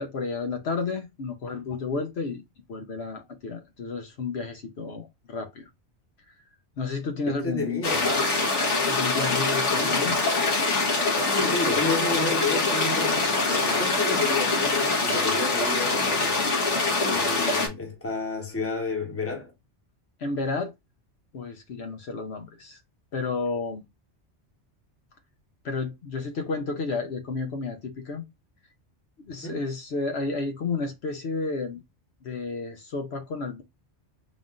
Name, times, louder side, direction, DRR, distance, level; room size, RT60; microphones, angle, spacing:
voice 1, 0.0-2.4 2.7-5.7 6.8-7.8 8.9-10.2 20.2-20.7 21.3-22.8 23.1-23.8 25.6-28.2 29.2-31.8 32.2-33.6, left 4 dB, 65° left, 0.9 m, -31 dB
voice 2, 7.3-8.3 9.8-10.0 11.3-16.5 17.1-19.5 29.4-29.6, left 3 dB, 15° left, 0.9 m, -31 dB
sound 1, 7.8-17.7, left 3 dB, 90° left, 1.5 m, -24 dB
3.6 x 2.5 x 3.6 m
omnidirectional pair, 1.2 m